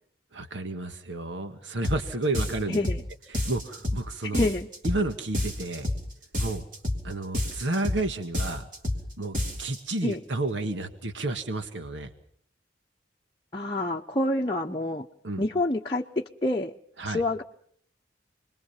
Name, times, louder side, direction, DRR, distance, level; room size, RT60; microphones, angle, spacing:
voice 1, 0.3-2.8 3.3-4.5 4.8-5.9 6.4-6.6 7.0-8.7 9.2-12.1 15.2-15.4 17.0-17.2, right 2 dB, 80° right, 7 dB, 1.7 m, -31 dB
sound 1, 1.8-2.0 2.3-3.0 3.3-4.0 4.3-5.0 5.3-6.0 6.3-7.0 7.3-8.0 8.3-9.0 9.3-9.8, left 1 dB, 45° right, 3.4 m, -29 dB
voice 2, 2.7-3.0 4.2-4.7 10.0-10.2 13.5-15.1 15.4-16.7 17.1-17.4, left 1 dB, 25° left, -2 dB, 0.9 m, -27 dB
29.0 x 21.5 x 5.7 m, 0.62 s
head